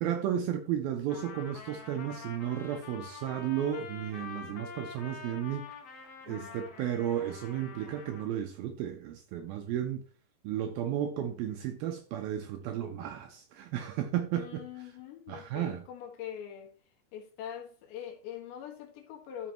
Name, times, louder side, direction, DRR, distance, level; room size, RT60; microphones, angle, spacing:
voice 1, 0.0-5.6 6.3-10.0 10.4-14.6 15.3-15.9, right 10 dB, 80° right, 2.1 m, -33 dB
Trumpet, 1.1-8.3, left 5 dB, 50° left, 2.0 m, -46 dB
voice 2, 6.2-6.7 14.3-16.7 17.1-19.5, left 9 dB, 80° left, 3.8 m, -43 dB
12.5 x 6.4 x 3.0 m
omnidirectional pair, 5.0 m